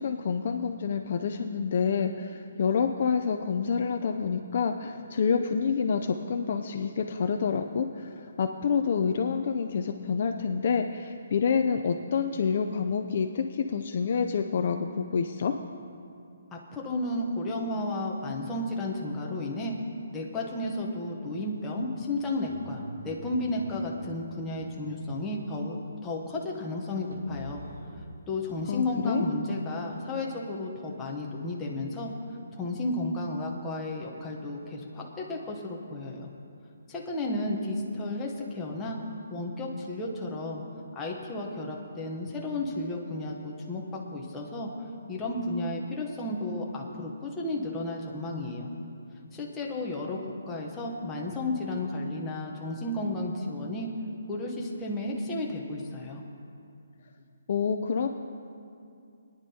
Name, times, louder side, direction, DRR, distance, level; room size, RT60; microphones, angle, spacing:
voice 1, 0.0-15.5 28.7-29.2 57.5-58.1, left 6 dB, 35° left, 5 dB, 0.4 m, -28 dB
voice 2, 16.5-19.8 20.1-27.6 28.3-32.1 32.6-36.3 36.9-39.0 39.3-40.6 40.9-44.7 45.1-48.7 49.3-50.2 50.5-53.9 54.3-56.2, left 2 dB, 5° left, -2 dB, 0.7 m, -33 dB
sound 1, 22.4-28.1, right 1 dB, 70° right, 1.8 m, -46 dB
21.5 x 10.0 x 2.8 m, 2.5 s
hypercardioid pair, 180°, 0 cm